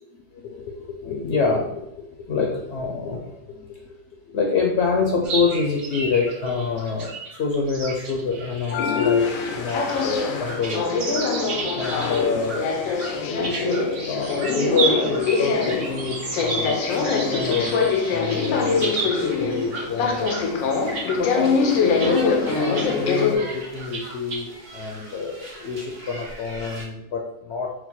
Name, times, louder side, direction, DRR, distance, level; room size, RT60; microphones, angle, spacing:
voice 1, 0.0-9.3 9.5-10.9 11.7-12.8 13.2-13.8 14.1-20.3 21.1-27.9, left 4 dB, 65° left, 1 dB, 0.8 m, -27 dB
sound 1, 5.2-20.4 20.7-21.2 21.7-22.1 22.5-22.9 23.2-23.3 23.8-24.4, right 3 dB, 65° right, 1.1 m, -32 dB
sound 2, 8.7-23.4, left 5 dB, 85° left, 1.0 m, -24 dB
sound 3, 21.1-26.8, right 1 dB, 30° right, 0.7 m, -39 dB
4.4 x 2.1 x 4.1 m, 0.86 s
omnidirectional pair, 1.4 m